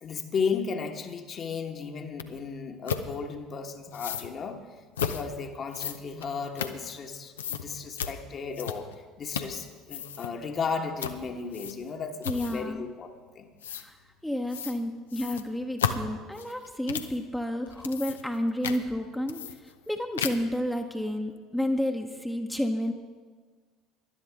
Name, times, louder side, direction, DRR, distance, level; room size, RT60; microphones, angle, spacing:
voice 1, 0.0-4.6 5.0-8.9 9.2-13.5, left 5 dB, 35° left, 4 dB, 1.3 m, -34 dB
sound 1, 2.2-2.3 2.9-3.1 3.9-4.3 5.0-5.3 5.7-7.1 7.4-7.6 8.0-8.2 8.5-9.0 9.3-9.6 9.9-10.3 11.0-11.2 11.5-11.9 12.2-12.7 13.6-13.9 14.5-14.8 15.1-17.2 17.7-18.4 18.6-18.8 19.3-19.9 20.2-20.6, left 7 dB, 75° left, 0.6 m, -33 dB
voice 2, 12.2-12.8 13.7-14.0 14.2-22.9, left 1 dB, 5° left, 3 dB, 1.0 m, -31 dB
19.5 x 12.0 x 3.6 m, 1.5 s
figure-of-eight pair, 60°, 0 cm